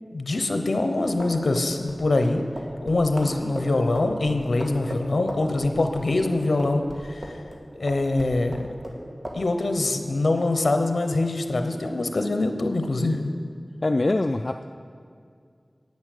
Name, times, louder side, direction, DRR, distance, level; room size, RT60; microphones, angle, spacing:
voice 1, 0.1-2.4 2.8-7.4 7.7-8.7 9.3-13.3, left 2 dB, 80° left, 6 dB, 0.8 m, -24 dB
sound 1, 1.1-7.6 7.9-9.0 9.2-9.4, equal, 35° right, 1.8 m, -36 dB
voice 2, 13.8-14.7, left 2 dB, 50° left, 6 dB, 0.3 m, -23 dB
9.6 x 8.7 x 6.6 m, 2.2 s
wide cardioid pair, 60°, 0 cm